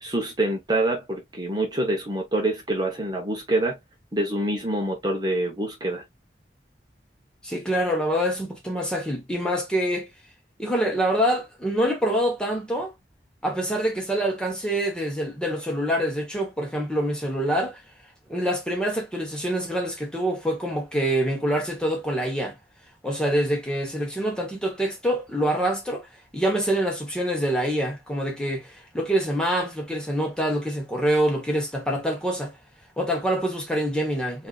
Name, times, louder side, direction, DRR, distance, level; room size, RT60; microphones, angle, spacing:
voice 1, 0.0-3.8 4.1-6.0, right 1 dB, 25° right, 0.9 m, -26 dB
voice 2, 7.4-10.1 10.6-12.9 13.4-17.8 18.3-22.5 23.0-26.1 26.3-32.5 33.0-34.5, right 1 dB, 5° left, 1.1 m, -25 dB
5.3 x 2.6 x 2.4 m
head